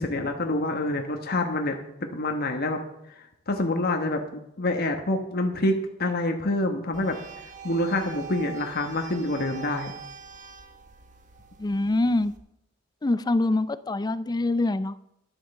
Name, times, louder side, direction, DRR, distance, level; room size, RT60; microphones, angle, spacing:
voice 1, 0.0-2.8 3.1-4.2 4.6-7.2 7.6-9.9, left 2 dB, 50° left, 4 dB, 1.2 m, -27 dB
sound 1, 6.9-12.4, right 6 dB, 40° right, 1.3 m, -43 dB
voice 2, 11.6-12.3 13.0-15.0, left 2 dB, 20° left, 17 dB, 0.4 m, -24 dB
11.0 x 7.6 x 6.6 m, 0.83 s
head